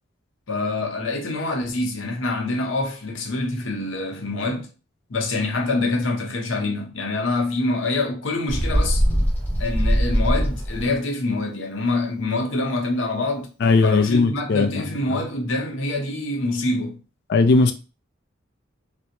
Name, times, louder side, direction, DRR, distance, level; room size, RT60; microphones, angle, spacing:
voice 1, 0.5-4.7 5.1-9.0 9.6-13.5 13.8-17.0, left 2 dB, 70° left, 0.8 m, -25 dB
Bird, 8.5-10.9, equal, 10° left, 0.8 m, -21 dB
voice 2, 13.6-14.8 15.1-15.2 17.3-17.7, left 3 dB, 55° left, 0.4 m, -18 dB
3.3 x 2.0 x 2.9 m
head